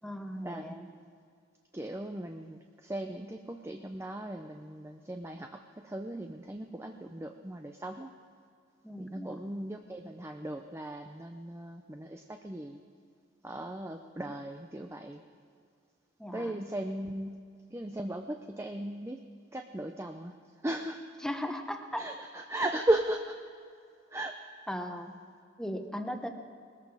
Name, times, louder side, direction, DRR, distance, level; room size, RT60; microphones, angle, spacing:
voice 1, 0.0-0.9 8.8-9.5 14.3-14.4 16.2-16.6 21.2-22.1 24.7-25.1 25.6-26.3, equal, 5° left, 5 dB, 1.0 m, -38 dB
voice 2, 1.7-8.1 9.0-12.8 13.4-15.2 16.3-17.4 17.7-19.2 19.5-20.3 20.6-21.0 22.0-23.4 24.1-24.4, right 1 dB, 15° right, 5 dB, 0.5 m, -36 dB
20.0 x 14.5 x 4.9 m, 2.2 s
head